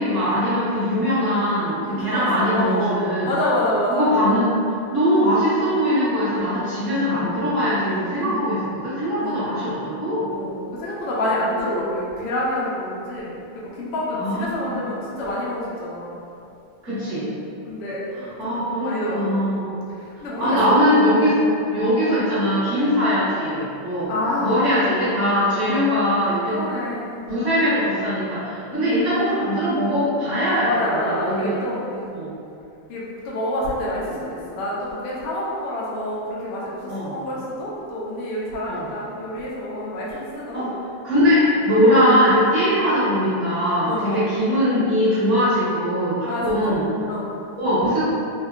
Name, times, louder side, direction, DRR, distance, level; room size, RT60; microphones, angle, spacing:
voice 1, 0.0-3.3 3.9-4.6 4.9-10.3 14.1-14.8 16.8-17.3 18.1-19.7 20.4-21.4 21.7-24.1 24.4-26.7 27.3-31.6 32.1-32.3 36.9-37.2 38.6-38.9 40.5-40.7 41.0-46.8 47.6-48.0, equal, 40° right, -14 dB, 1.3 m, -21 dB
voice 2, 1.8-4.1 8.2-8.5 9.2-9.5 10.3-16.2 17.7-18.0 18.5-19.5 20.2-20.8 21.2-21.3 22.9-23.1 24.1-24.9 26.5-27.5 28.7-28.9 30.7-32.1 32.9-36.7 37.0-40.7 43.8-44.3 46.3-46.8 47.1-47.3, left 1 dB, 85° left, -7 dB, 0.9 m, -27 dB
3.6 x 2.1 x 2.3 m, 2.7 s
omnidirectional pair, 2.3 m